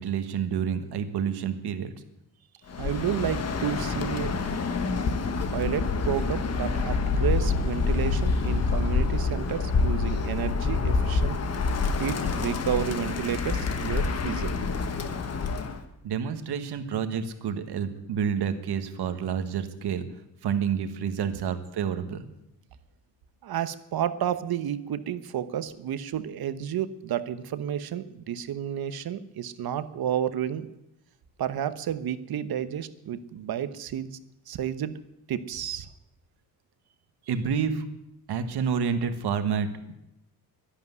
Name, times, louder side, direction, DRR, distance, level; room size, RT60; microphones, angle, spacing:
voice 1, 0.0-1.9 16.0-20.0 20.4-22.2 37.3-37.8 38.3-39.9, right 7 dB, 85° right, 9 dB, 1.6 m, -29 dB
Bird, 2.7-15.8, left 4 dB, 40° left, 1.3 m, -27 dB
voice 2, 2.8-4.3 5.5-11.4 12.0-14.7 23.4-30.7 31.4-34.1 34.5-35.0 35.3-35.9, right 9 dB, 65° right, 13 dB, 1.0 m, -31 dB
sound 1, 6.0-6.3 7.0-7.5 7.8-8.3 9.0-9.4 9.9-10.5, left 3 dB, 70° left, 4.7 m, -45 dB
12.0 x 11.5 x 9.6 m, 0.87 s
wide cardioid pair, 175°, 39 cm